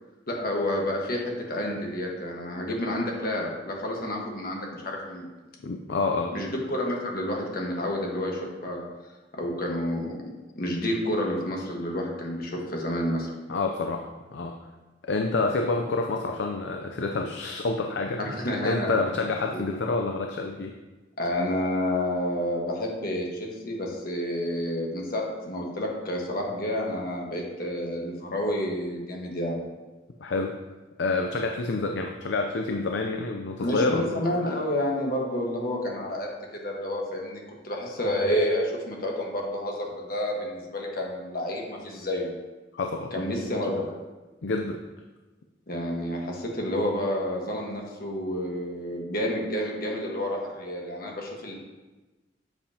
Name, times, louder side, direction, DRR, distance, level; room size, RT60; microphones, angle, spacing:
voice 1, 0.3-5.3 6.3-8.8 9.3-10.2 10.5-13.3 18.2-19.0 19.5-19.6 21.2-29.6 33.6-42.3 43.1-43.9 45.7-51.5, left 1 dB, 55° left, 0 dB, 1.4 m, -29 dB
voice 2, 5.6-6.3 13.5-14.6 15.0-18.2 18.6-20.7 30.2-30.6 31.0-34.1 42.7-43.2 44.4-44.8, left 3 dB, 75° left, 3 dB, 0.5 m, -28 dB
7.8 x 6.8 x 2.8 m, 1.2 s
head